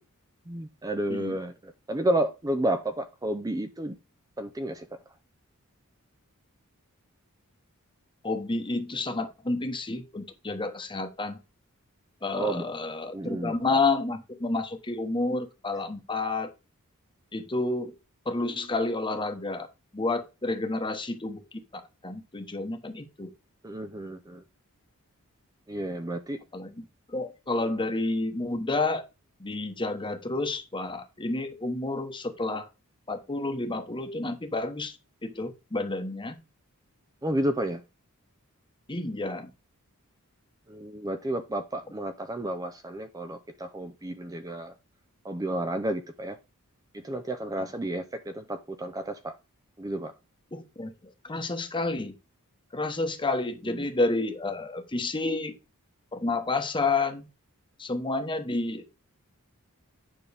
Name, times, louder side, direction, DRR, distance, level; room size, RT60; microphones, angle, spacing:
voice 1, 0.5-4.0 4.4-4.9 12.3-12.7 13.1-13.5 23.6-24.4 25.7-26.4 37.2-37.8 40.7-44.7 45.2-46.4 46.9-49.3 49.8-50.1 53.7-53.9, right 1 dB, 15° right, 0.5 m, -31 dB
voice 2, 8.2-11.4 12.2-16.5 17.3-17.9 18.3-19.7 19.9-21.4 21.7-23.3 26.5-26.7 27.1-29.0 29.4-32.7 33.1-34.9 35.2-36.4 38.9-39.5 47.6-47.7 50.5-50.9 51.2-52.1 52.7-55.5 56.1-57.3 57.8-59.0, left 3 dB, 20° left, 1.0 m, -30 dB
9.5 x 5.4 x 3.4 m
head